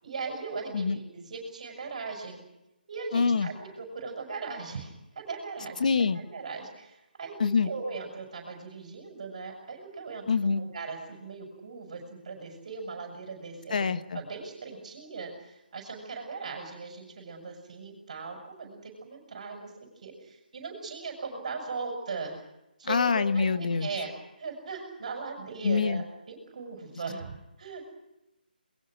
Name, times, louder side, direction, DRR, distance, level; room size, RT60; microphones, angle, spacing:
voice 1, 0.0-2.4 2.9-5.8 6.1-13.9 14.1-22.4 22.8-24.1 24.4-27.9, right 4 dB, 45° right, 3 dB, 6.0 m, -39 dB
voice 2, 3.1-3.5 5.8-6.2 7.4-7.7 10.3-10.6 13.7-14.2 22.8-23.9 25.6-26.0, left 5 dB, 50° left, 11 dB, 1.4 m, -25 dB
27.0 x 21.0 x 6.3 m, 0.94 s
figure-of-eight pair, 155°, 5 cm